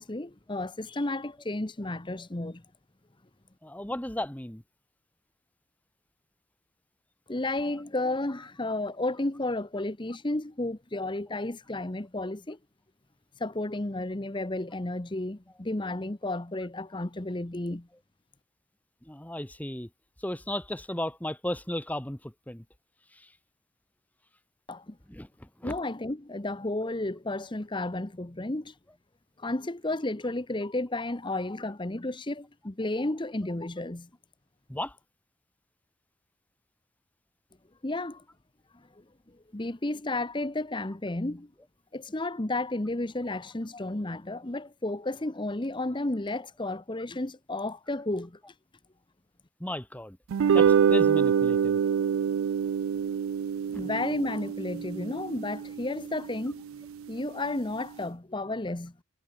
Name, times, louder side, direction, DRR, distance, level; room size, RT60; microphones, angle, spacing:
voice 1, 0.0-2.6 7.3-12.6 13.4-17.9 24.7-25.0 25.6-28.7 29.4-34.1 37.8-38.2 38.7-41.5 41.9-48.4 53.7-56.7 57.1-59.0, left 2 dB, 25° left, 0.9 m, -32 dB
voice 2, 3.6-4.6 19.0-19.9 20.2-22.6 23.1-23.3 25.1-25.7 34.7-35.0 49.6-50.2 50.5-51.8 53.7-53.8, left 1 dB, 5° left, 1.1 m, -35 dB
sound 1, 50.3-56.8, right 7 dB, 80° right, 0.3 m, -26 dB
head